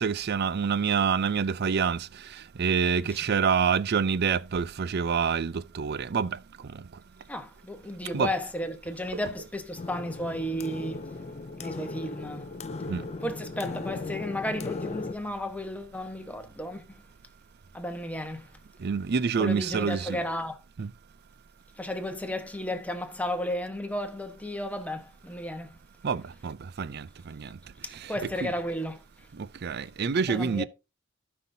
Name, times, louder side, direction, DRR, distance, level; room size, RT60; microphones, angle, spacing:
voice 1, 0.0-2.1 2.6-6.3 8.1-8.3 9.1-9.2 12.9-13.0 18.8-20.2 20.8-20.9 26.0-27.5 28.2-28.5 29.6-30.6, right 6 dB, 55° right, 0.5 m, -27 dB
voice 2, 7.3-11.1 11.6-12.5 13.2-17.0 17.7-18.5 19.4-20.6 21.8-25.7 28.1-29.0 30.3-30.6, left 1 dB, 5° left, 1.1 m, -33 dB
sound 1, 9.8-15.1, left 3 dB, 35° left, 0.5 m, -37 dB
16.0 x 5.7 x 2.7 m
head